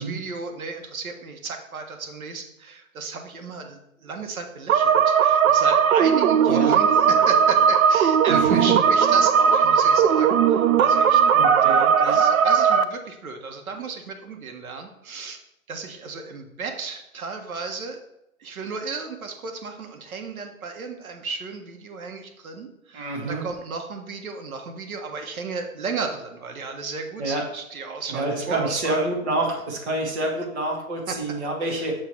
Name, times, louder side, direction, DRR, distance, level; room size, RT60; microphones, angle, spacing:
voice 1, 0.0-11.2 11.8-15.4 15.7-18.0 18.4-29.1 31.1-31.2 31.7-31.9, right 4 dB, 85° right, 5 dB, 1.4 m, -34 dB
sound 1, 4.7-12.8, right 7 dB, 70° right, 0.6 m, -18 dB
voice 2, 8.3-8.6 11.3-12.2 22.9-23.4 27.2-27.4 28.1-31.9, right 2 dB, 50° right, -1 dB, 2.3 m, -27 dB
6.7 x 3.4 x 5.9 m, 0.84 s
hypercardioid pair, 160°, 41 cm